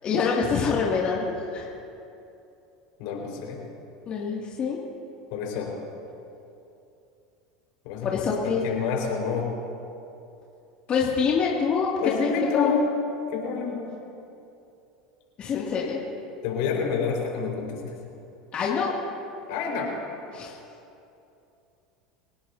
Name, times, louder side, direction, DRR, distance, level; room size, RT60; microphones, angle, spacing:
voice 1, 0.0-1.7 4.1-4.8 8.0-8.6 10.9-11.9 12.2-12.3 12.5-12.9 15.4-16.0 18.5-19.0 20.3-20.6, left 5 dB, 40° left, -4 dB, 2.4 m, -25 dB
voice 2, 3.0-3.6 5.3-5.7 7.8-9.5 12.0-12.9 13.3-13.8 16.4-18.0 19.5-19.9, left 5 dB, 65° left, -1 dB, 4.8 m, -28 dB
29.0 x 17.5 x 2.8 m, 2.7 s
hypercardioid pair, 85°, 3 cm